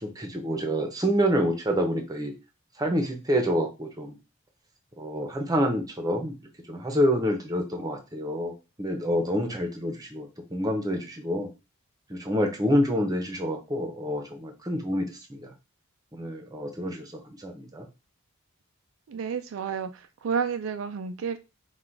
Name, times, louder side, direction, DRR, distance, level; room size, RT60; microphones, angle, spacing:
voice 1, 0.0-2.3 2.8-4.1 5.0-6.3 6.7-8.5 8.8-11.5 12.1-15.5 16.1-17.9, equal, 20° right, 4 dB, 0.8 m, -27 dB
voice 2, 19.1-21.4, right 6 dB, 70° right, 8 dB, 0.4 m, -31 dB
3.9 x 2.4 x 4.5 m, 0.27 s
head